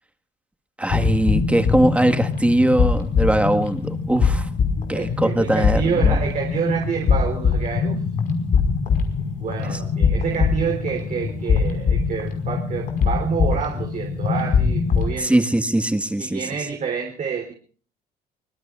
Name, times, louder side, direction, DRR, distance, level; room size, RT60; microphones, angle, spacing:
voice 1, 0.8-4.5 4.9-6.2 9.7-9.8 15.2-16.4, right 1 dB, 5° right, 6 dB, 1.7 m, -21 dB
sound 1, 0.9-15.1, left 5 dB, 55° left, 5.4 m, -22 dB
voice 2, 4.9-8.0 9.3-15.4 16.2-17.5, right 6 dB, 45° right, 2 dB, 3.7 m, -28 dB
25.0 x 21.0 x 2.5 m, 0.42 s
cardioid pair, 110°, 17 cm